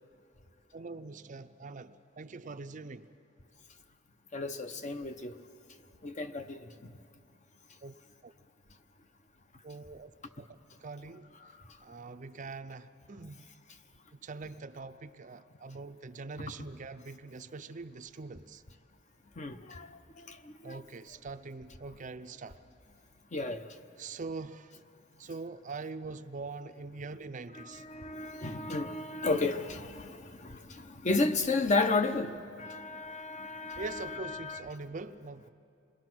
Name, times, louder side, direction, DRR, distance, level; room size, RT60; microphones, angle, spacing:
voice 1, 0.7-3.1 7.8-7.9 8.2-8.3 9.6-10.5 10.8-11.3 11.8-13.4 14.2-18.6 20.6-22.6 24.0-24.7 25.2-27.8 33.8-35.5, right 3 dB, 40° right, 0.5 m, -43 dB
voice 2, 4.3-5.4 6.0-6.9 11.4-11.5 16.4-16.5 19.4-20.8 23.3-23.6 27.5-34.6, left 3 dB, 35° left, 0.9 m, -33 dB
27.5 x 21.0 x 6.1 m
head